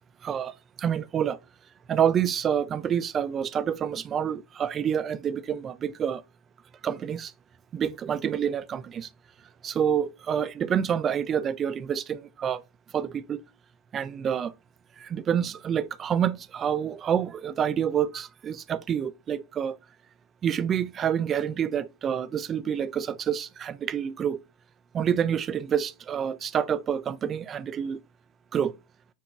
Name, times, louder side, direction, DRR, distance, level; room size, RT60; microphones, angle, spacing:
voice 1, 0.2-1.4 1.9-6.2 6.8-7.3 7.7-9.1 9.6-12.6 12.9-13.4 13.9-14.5 15.0-19.8 20.4-24.4 24.9-28.0 28.5-28.7, right 8 dB, 25° right, 0.4 m, -28 dB
7.2 x 2.9 x 2.3 m
figure-of-eight pair, 90°, 0 cm